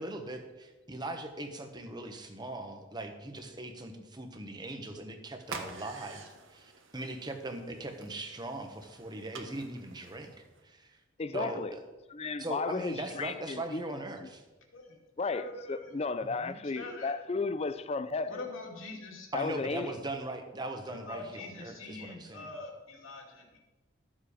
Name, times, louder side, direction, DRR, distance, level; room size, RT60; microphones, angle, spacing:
voice 1, 0.0-10.3 10.6-11.0 11.3-11.8 12.4-14.4 16.2-16.6 19.3-22.5, right 2 dB, 20° right, 5 dB, 1.1 m, -40 dB
sound 1, 5.4-10.6, right 4 dB, 65° right, 1.3 m, -47 dB
voice 2, 11.2-11.7 12.1-13.8 14.2-14.3 15.2-18.4 19.3-20.0, left 4 dB, 30° left, 14 dB, 0.4 m, -34 dB
voice 3, 15.3-16.0 16.7-17.1 18.3-19.3 19.5-19.6 20.9-23.6, left 2 dB, 70° left, 0 dB, 2.5 m, -44 dB
13.5 x 7.5 x 5.0 m, 1.1 s
head